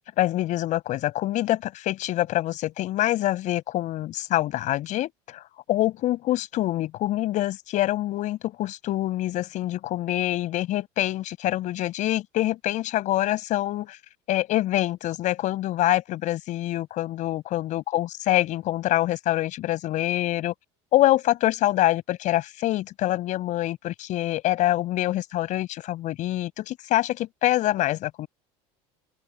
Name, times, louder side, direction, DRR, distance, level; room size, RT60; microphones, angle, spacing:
voice 1, 0.2-5.4 5.7-14.0 14.3-20.5 20.9-28.3, left 15 dB, 60° left, 5.3 m, -25 dB
open air
supercardioid pair, 95°, 15 cm